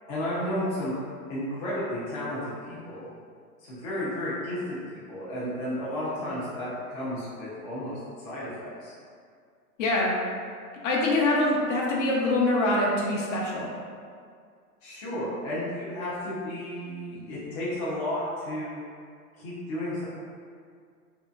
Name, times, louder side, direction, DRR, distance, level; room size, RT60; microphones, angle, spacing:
voice 1, 0.1-0.9 1.3-3.1 3.6-4.8 5.1-8.9 14.8-18.9 19.4-20.0, left 1 dB, 20° left, -9 dB, 0.3 m, -33 dB
voice 2, 9.8-10.2 10.8-13.7, left 2 dB, 55° left, -3 dB, 0.7 m, -24 dB
2.7 x 2.3 x 2.2 m, 2.1 s
hypercardioid pair, 115°, 46 cm